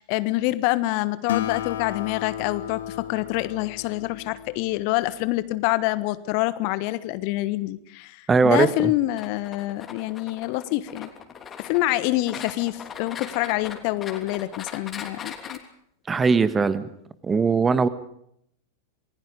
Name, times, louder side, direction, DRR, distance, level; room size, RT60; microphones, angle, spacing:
voice 1, 0.0-11.1 11.6-15.6, left 18 dB, 45° left, 16 dB, 1.2 m, -26 dB
Acoustic guitar, 1.3-5.0, left 11 dB, 60° left, 2.2 m, -33 dB
voice 2, 8.3-8.9 16.1-16.9 17.2-17.9, right 4 dB, 15° right, 14 dB, 1.5 m, -20 dB
sound 1, 9.2-15.6, left 7 dB, 25° left, 3.2 m, -40 dB
28.0 x 20.5 x 5.2 m, 0.71 s
figure-of-eight pair, 90°, 0 cm